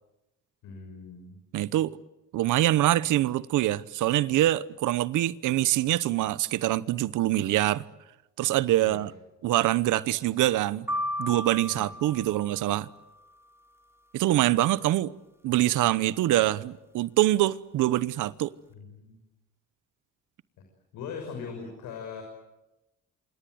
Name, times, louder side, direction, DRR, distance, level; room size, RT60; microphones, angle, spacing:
voice 1, 0.6-1.3 8.8-9.0 11.2-11.3 11.7-11.9 18.7-19.2 20.9-22.2, left 5 dB, 90° left, 6.2 m, -40 dB
voice 2, 1.5-2.0 2.3-7.8 8.4-9.1 9.4-10.9 11.2-12.9 14.1-15.1 15.4-18.5, right 15 dB, 85° right, 1.0 m, -24 dB
sound 1, 10.9-13.0, left 1 dB, 10° right, 2.8 m, -34 dB
27.5 x 27.0 x 7.9 m
cardioid pair, 90°, 30 cm